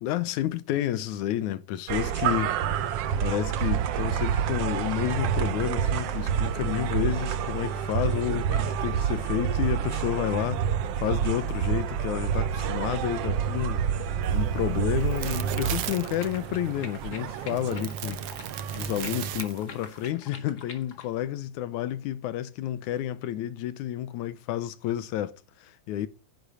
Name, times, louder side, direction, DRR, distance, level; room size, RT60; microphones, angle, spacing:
voice 1, 0.0-10.6 11.0-13.8 14.3-18.2 18.7-26.1, left 12 dB, 75° left, 2.0 m, -30 dB
sound 1, 1.9-19.5, right 8 dB, 85° right, 1.3 m, -28 dB
sound 2, 14.2-20.1, right 12 dB, 70° right, 1.7 m, -39 dB
sound 3, 14.9-21.1, left 5 dB, 40° left, 1.5 m, -46 dB
10.5 x 8.4 x 9.8 m
omnidirectional pair, 4.0 m